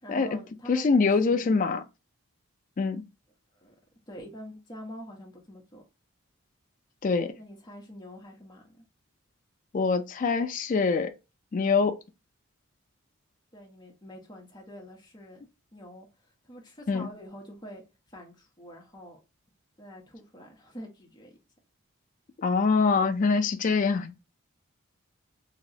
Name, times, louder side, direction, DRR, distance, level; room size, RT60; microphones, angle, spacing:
voice 1, 0.0-0.9 1.2-1.6 3.5-3.7 4.1-5.8 7.4-8.8 13.5-16.1 16.4-17.8 18.1-19.2 19.8-21.4, equal, 20° left, 1.0 m, -46 dB
voice 2, 0.7-1.8 2.8-3.0 7.0-7.3 9.7-11.1 11.5-12.0 16.9-17.1 22.4-24.2, left 4 dB, 35° left, 0.3 m, -24 dB
3.0 x 2.9 x 2.7 m
head